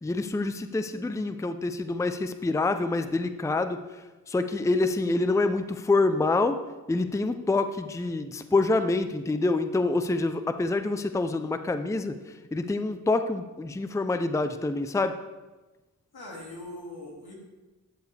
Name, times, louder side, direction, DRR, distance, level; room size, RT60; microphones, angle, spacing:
voice 1, 0.0-3.8 4.3-6.6 6.9-12.1 12.5-15.1, left 3 dB, 10° left, 9 dB, 0.5 m, -26 dB
voice 2, 0.9-1.3 16.1-17.3, left 1 dB, 90° left, -2 dB, 2.4 m, -42 dB
12.5 x 7.0 x 3.4 m, 1.1 s
wide cardioid pair, 70°, 37 cm